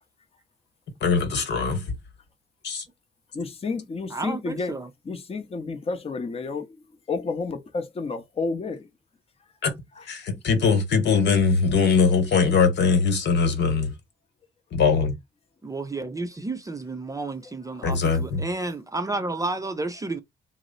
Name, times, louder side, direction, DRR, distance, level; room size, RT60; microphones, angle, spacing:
voice 1, 1.0-1.8 2.6-2.8 9.6-9.7 10.1-13.9 14.7-15.1 17.8-18.4, left 5 dB, 60° left, 1.2 m, -21 dB
voice 2, 3.3-4.7 5.1-6.8 7.1-8.9, left 4 dB, 30° left, 0.7 m, -30 dB
voice 3, 4.1-4.9 15.6-20.2, right 2 dB, 15° right, 0.5 m, -31 dB
2.9 x 2.0 x 3.9 m
cardioid pair, 90°, 20 cm